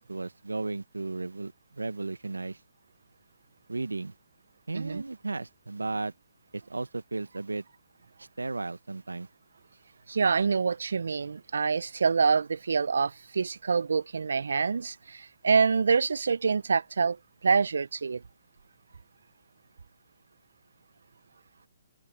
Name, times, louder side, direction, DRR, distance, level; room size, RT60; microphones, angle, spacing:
voice 1, 0.0-2.6 3.7-4.1 4.7-6.1 6.5-7.6 8.2-9.3, right 3 dB, 85° right, 1.1 m, -35 dB
voice 2, 10.1-17.2 17.4-18.2, right 5 dB, 70° right, 0.5 m, -26 dB
figure-of-eight pair, 135°, 0 cm